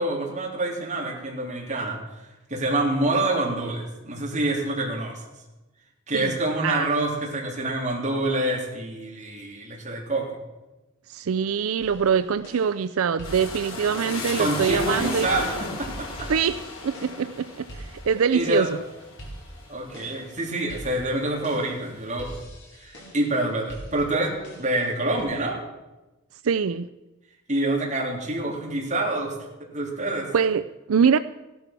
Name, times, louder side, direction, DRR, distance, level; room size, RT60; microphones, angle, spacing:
voice 1, 0.0-2.0 2.5-5.2 6.1-10.4 14.4-16.3 18.3-18.7 19.7-22.3 22.8-25.6 27.5-29.3 29.7-30.3, right 1 dB, 35° right, -1 dB, 3.5 m, -27 dB
voice 2, 6.1-7.0 11.1-15.3 16.3-18.8 26.4-26.9 30.3-31.2, right 6 dB, 85° right, 13 dB, 0.5 m, -24 dB
sound 1, 11.8-25.2, right 1 dB, 55° left, 4.7 m, -44 dB
sound 2, 13.2-20.9 21.3-22.1, left 3 dB, 85° left, 3.2 m, -35 dB
15.5 x 12.0 x 6.0 m, 1.1 s
head